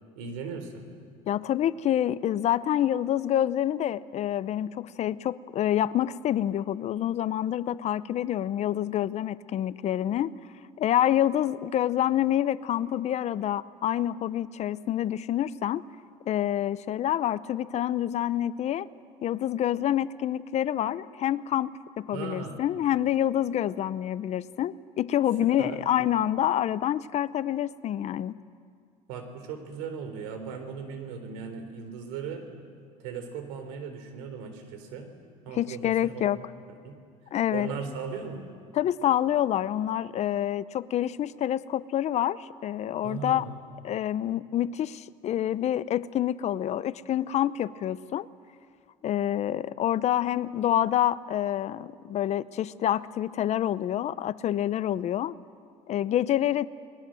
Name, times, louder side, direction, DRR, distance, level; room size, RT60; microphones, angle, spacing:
voice 1, 0.2-0.8 22.1-22.6 25.4-25.8 29.1-32.4 33.0-35.1 35.5-36.4 36.8-36.9 37.5-38.4 43.0-43.5, right 6 dB, 85° right, 7 dB, 3.7 m, -37 dB
voice 2, 1.3-10.3 10.8-15.8 16.3-18.9 19.2-28.4 35.5-36.4 37.3-37.7 38.7-43.4 43.8-48.3 49.0-55.3 55.9-56.7, left 11 dB, 45° left, 17 dB, 0.7 m, -27 dB
29.5 x 21.0 x 7.7 m, 2.2 s
supercardioid pair, 110°, 15 cm